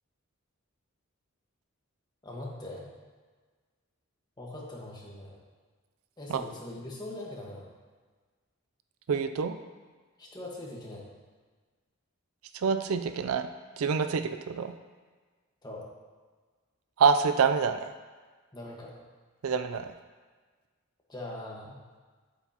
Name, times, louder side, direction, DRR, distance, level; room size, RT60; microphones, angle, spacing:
voice 1, 2.2-2.9 4.4-5.4 6.2-7.7 10.2-11.0 15.6-15.8 18.5-18.9 21.1-21.8, left 1 dB, 20° left, -3 dB, 1.3 m, -41 dB
voice 2, 9.1-9.5 12.6-13.5 13.8-14.7 17.0-17.9 19.4-19.9, right 5 dB, 75° right, 9 dB, 0.4 m, -26 dB
8.2 x 8.0 x 2.9 m, 1.4 s
head